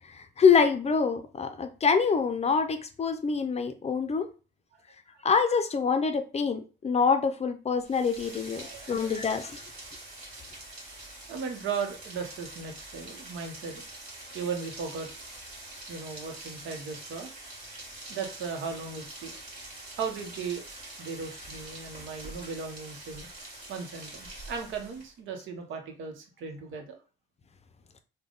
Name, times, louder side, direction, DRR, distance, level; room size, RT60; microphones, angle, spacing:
voice 1, 0.1-4.3 5.2-9.6, left 5 dB, 35° left, 0.5 m, -25 dB
Rain, 7.8-25.2, right 1 dB, 50° right, 1.7 m, -45 dB
voice 2, 8.6-9.3 11.3-13.8 14.3-15.1 15.9-17.3 18.1-19.4 20.0-20.6 21.0-23.3 23.7-27.0, right 5 dB, 80° right, 0.9 m, -37 dB
3.5 x 2.2 x 3.7 m
cardioid pair, 90°, 20 cm